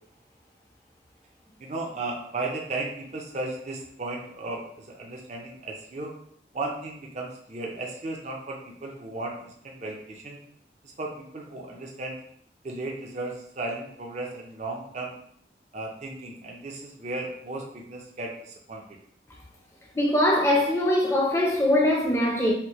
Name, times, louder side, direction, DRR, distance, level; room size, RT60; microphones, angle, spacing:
voice 1, 1.6-6.1 6.5-10.4 11.0-12.1 12.6-15.1 15.7-18.8, right 2 dB, 40° right, 0.5 m, -35 dB
voice 2, 19.9-22.5, left 1 dB, 15° left, 0.5 m, -22 dB
4.2 x 2.0 x 3.0 m
head